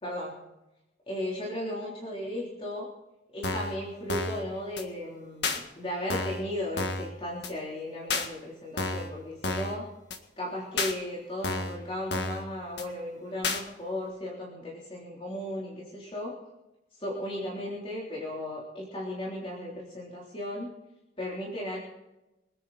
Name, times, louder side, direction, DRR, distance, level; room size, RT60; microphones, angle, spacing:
voice 1, 0.0-0.3 1.1-2.9 3.3-9.9 10.4-16.3 16.9-20.7 21.2-21.8, left 1 dB, 30° left, -5 dB, 3.6 m, -36 dB
sound 1, 3.4-3.8 4.1-4.4 4.8-4.9 5.4-5.6 6.1-6.4 6.8-7.1 7.4-7.5 8.1-8.3 8.8-9.1 9.4-9.8 10.1-10.2 10.8-10.9 11.4-11.8 12.1-12.4 12.8-12.9 13.4-13.6, left 3 dB, 60° left, 1.7 m, -30 dB
25.0 x 9.9 x 4.2 m, 0.95 s
head